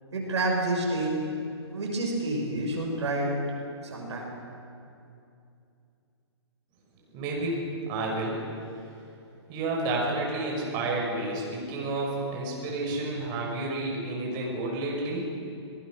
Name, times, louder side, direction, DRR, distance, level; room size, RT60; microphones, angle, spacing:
voice 1, 0.1-1.2 1.6-3.3 3.8-4.3, right 2 dB, 80° right, 0 dB, 6.5 m, -29 dB
voice 2, 7.1-7.6 7.9-8.4 9.5-15.3, right 2 dB, 30° right, -2 dB, 6.0 m, -30 dB
23.5 x 19.5 x 6.4 m, 2.5 s
hypercardioid pair, 140°, 15 cm